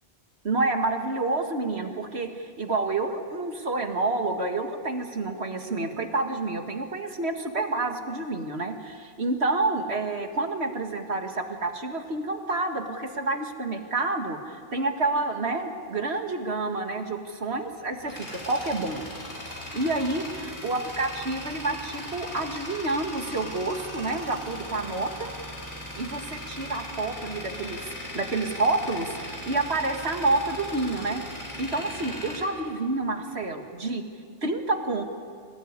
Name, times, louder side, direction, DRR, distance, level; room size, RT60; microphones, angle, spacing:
voice 1, 0.4-19.0 19.7-25.3 26.0-34.0 34.4-35.0, right 2 dB, 85° right, 5 dB, 2.3 m, -29 dB
Tools, 17.6-33.4, left 1 dB, 55° left, 6.0 m, -39 dB
25.0 x 19.0 x 9.7 m, 2.2 s
omnidirectional pair, 1.1 m